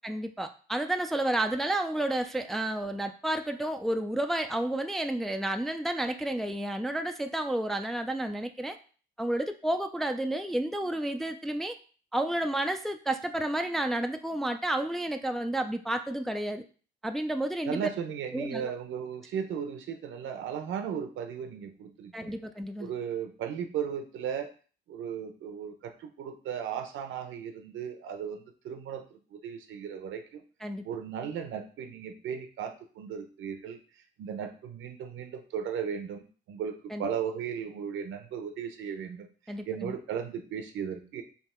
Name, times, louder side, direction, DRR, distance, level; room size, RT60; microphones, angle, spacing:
voice 1, 0.0-8.8 9.2-11.7 12.1-16.6 17.0-17.8 18.3-18.7 22.1-22.9 30.6-30.8 36.9-37.1 39.5-40.0, right 1 dB, ahead, 6 dB, 0.4 m, -31 dB
voice 2, 17.7-22.4 22.8-24.5 24.9-29.0 29.3-30.4 30.8-33.8 34.2-36.2 36.5-39.3 39.7-41.2, right 8 dB, 80° right, 6 dB, 0.8 m, -36 dB
3.6 x 2.8 x 4.3 m, 0.39 s
cardioid pair, 90°, 20 cm